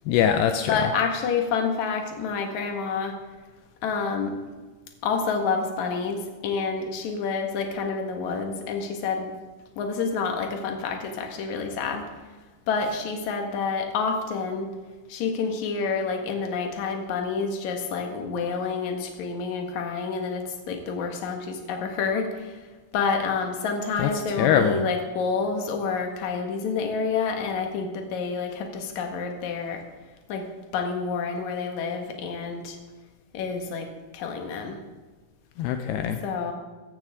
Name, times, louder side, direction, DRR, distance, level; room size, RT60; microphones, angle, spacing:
voice 1, 0.1-0.7 24.0-24.8 35.6-36.2, left 9 dB, 90° left, 7 dB, 2.3 m, -23 dB
voice 2, 0.7-3.1 3.8-4.4 5.0-9.3 9.8-12.0 12.7-14.7 15.1-22.6 22.9-29.8 30.3-30.4 30.7-32.8 33.3-33.9 34.1-34.8 36.2-36.5, left 5 dB, 60° left, 3 dB, 2.1 m, -28 dB
15.5 x 14.5 x 3.7 m, 1.3 s
omnidirectional pair, 5.5 m